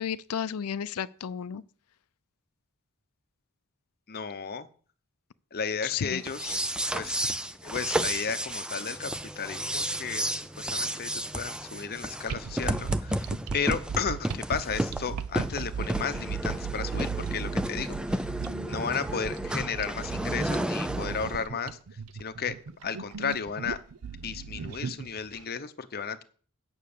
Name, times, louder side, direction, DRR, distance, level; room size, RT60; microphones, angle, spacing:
voice 1, 0.0-1.6 5.8-6.2, left 8 dB, 75° left, 0.5 m, -32 dB
voice 2, 4.1-4.7 5.5-18.3 18.7-22.6 22.8-23.8 24.2-26.2, left 6 dB, 45° left, 0.8 m, -34 dB
sound 1, 6.2-21.4, right 1 dB, 5° right, 0.4 m, -32 dB
sound 2, 12.3-25.4, right 6 dB, 85° right, 0.6 m, -37 dB
9.1 x 6.1 x 6.7 m
head